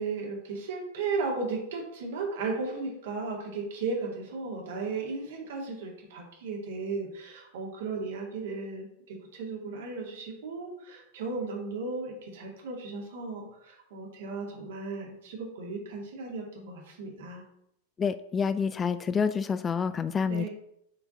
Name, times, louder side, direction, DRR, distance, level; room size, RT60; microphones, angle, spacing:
voice 1, 0.0-17.4 20.2-20.5, right 4 dB, 55° right, -1 dB, 2.4 m, -35 dB
voice 2, 18.0-20.5, left 6 dB, 20° left, 13 dB, 0.3 m, -28 dB
8.6 x 4.8 x 3.9 m, 0.78 s
figure-of-eight pair, 90°, 0 cm